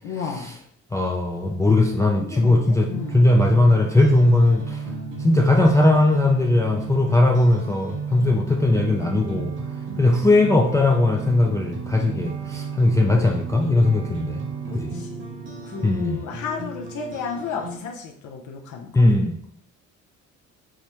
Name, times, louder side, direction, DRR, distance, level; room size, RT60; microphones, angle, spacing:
voice 1, 0.0-0.5 2.2-3.2 4.9-5.1 9.9-10.1 14.7-19.0, left 5 dB, 75° left, 2 dB, 0.6 m, -33 dB
voice 2, 0.9-4.8 5.2-9.5 10.0-14.4 14.7-14.9 15.8-16.2 18.9-19.5, left 2 dB, 10° left, 0 dB, 0.3 m, -19 dB
sound 1, 3.0-17.8, right 5 dB, 40° right, 0.8 m, -34 dB
4.8 x 2.1 x 2.9 m, 0.66 s
cardioid pair, 90°, 30 cm